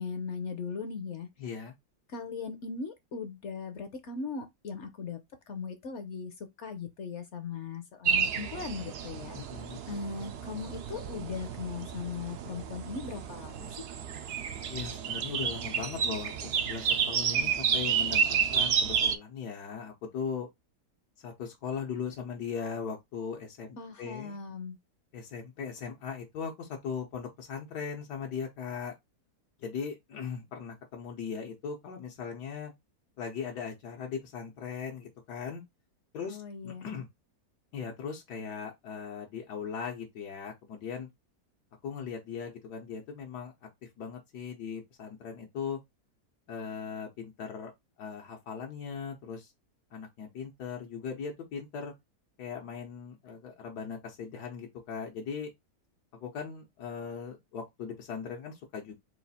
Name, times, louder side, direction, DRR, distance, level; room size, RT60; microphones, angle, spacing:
voice 1, 0.0-1.3 2.1-5.2 5.5-9.4 9.9-13.8 23.8-24.8 36.3-36.9, left 5 dB, 60° left, 0.8 m, -38 dB
voice 2, 1.4-1.7 9.3-9.8 14.7-20.5 21.2-24.4 25.1-28.9 29.6-32.7 33.2-35.6 36.1-36.4 36.6-37.1 37.7-41.1 41.8-43.7 44.0-45.8 46.5-47.7 48.0-49.5 49.9-51.9 52.4-55.5 56.1-58.9, left 6 dB, 85° left, 1.5 m, -39 dB
sound 1, 8.0-19.2, right 7 dB, 85° right, 0.5 m, -31 dB
4.3 x 2.4 x 4.1 m
omnidirectional pair, 1.7 m